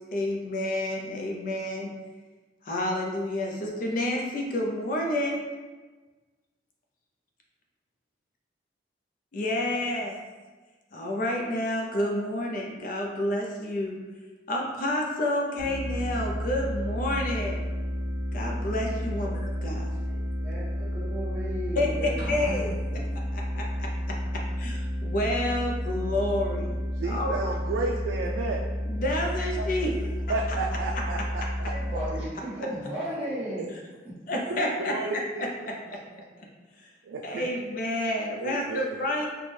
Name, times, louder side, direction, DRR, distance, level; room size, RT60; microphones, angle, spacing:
voice 1, 0.1-1.9 2.6-5.4 9.3-10.2 10.9-14.0 14.5-17.6 18.3-19.9 21.8-22.7 23.3-23.9 24.6-26.8 27.0-27.3 28.9-29.9 34.3-34.9 36.4-36.5 36.8-36.9 37.2-39.3, left 1 dB, 50° left, 0 dB, 0.5 m, -29 dB
sound 1, 15.6-32.1, equal, 65° right, 1.1 m, -31 dB
voice 2, 20.4-23.0 31.7-33.6, equal, 10° right, -12 dB, 1.2 m, -35 dB
sound 2, 22.2-23.6, equal, 70° left, 1.0 m, -44 dB
voice 3, 26.9-28.6 29.6-29.7 30.3-32.0 33.6-33.7 34.5-35.5 35.9-36.2 37.0-37.5 38.4-39.0, right 3 dB, 90° right, 0 dB, 0.3 m, -32 dB
4.2 x 2.2 x 3.2 m, 1.3 s
head